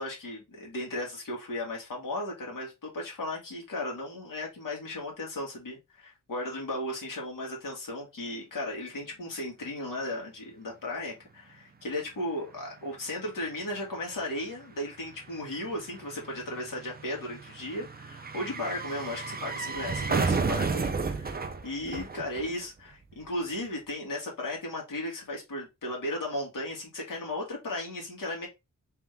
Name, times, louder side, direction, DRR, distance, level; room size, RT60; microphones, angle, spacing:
voice 1, 0.0-28.5, left 1 dB, 80° left, 2.0 m, -36 dB
sound 1, 12.2-12.3 12.5-22.9 23.1-23.2, right 4 dB, 30° right, 0.5 m, -33 dB
3.6 x 3.3 x 3.4 m
wide cardioid pair, 110°, 32 cm